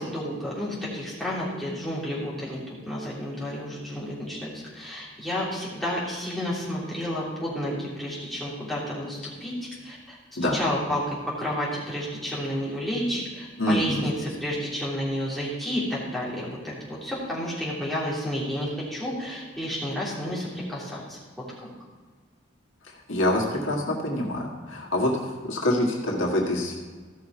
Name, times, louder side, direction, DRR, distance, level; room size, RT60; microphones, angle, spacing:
voice 1, 0.0-2.6 2.8-9.5 9.8-10.2 10.5-21.2, equal, ahead, -9 dB, 3.2 m, -31 dB
voice 2, 13.6-14.1 23.1-26.8, left 1 dB, 80° left, -2 dB, 1.8 m, -26 dB
14.5 x 6.2 x 4.7 m, 1.5 s
head